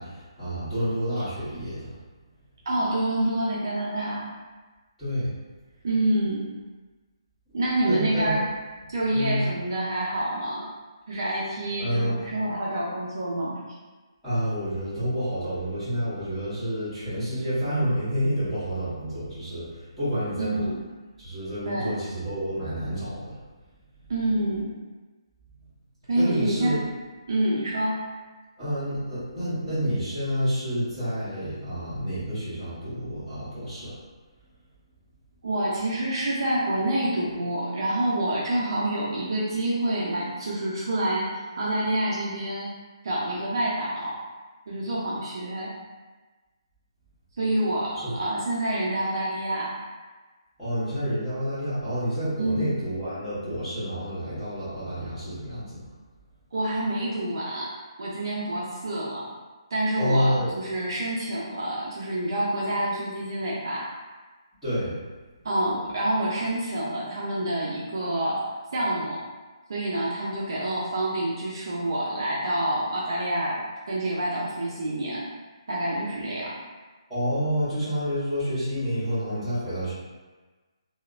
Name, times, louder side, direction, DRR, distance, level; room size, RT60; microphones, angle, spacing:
voice 1, 0.0-1.9 5.0-5.3 7.9-8.3 9.1-9.5 11.8-12.2 14.2-20.6 21.2-23.4 26.1-26.8 28.6-33.9 48.0-48.1 50.6-55.8 60.0-60.5 64.6-64.9 77.1-79.9, equal, ahead, -21 dB, 1.2 m, -29 dB
voice 2, 2.7-4.3 5.8-6.5 7.5-8.5 8.9-10.7 11.1-13.6 20.4-20.8 21.7-22.0 24.1-24.7 26.1-26.8 27.3-28.0 35.4-42.7 43.0-44.1 44.7-45.8 47.4-49.7 52.4-52.7 56.5-57.7 58.0-59.3 59.7-63.9 65.4-69.2 69.7-73.6 73.9-75.3 75.7-76.6, right 1 dB, 50° right, -6 dB, 0.4 m, -27 dB
2.9 x 2.0 x 2.4 m, 1.3 s
hypercardioid pair, 175°, 3 cm